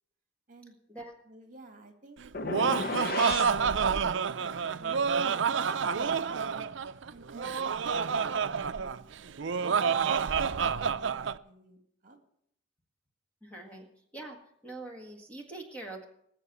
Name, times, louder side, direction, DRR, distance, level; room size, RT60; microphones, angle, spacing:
voice 1, 1.3-2.2 2.7-6.7 7.1-9.1 9.5-12.2 13.6-13.8, right 1 dB, 40° right, 5 dB, 2.0 m, -54 dB
Laughter, 2.2-11.4, right 6 dB, 65° right, 0.5 m, -28 dB
sound 1, 2.3-3.6, left 3 dB, 45° left, 0.8 m, -33 dB
voice 2, 13.4-13.9 14.1-14.4 14.6-16.0, right 2 dB, 5° left, 1 dB, 1.6 m, -43 dB
20.0 x 7.4 x 6.9 m, 0.72 s
head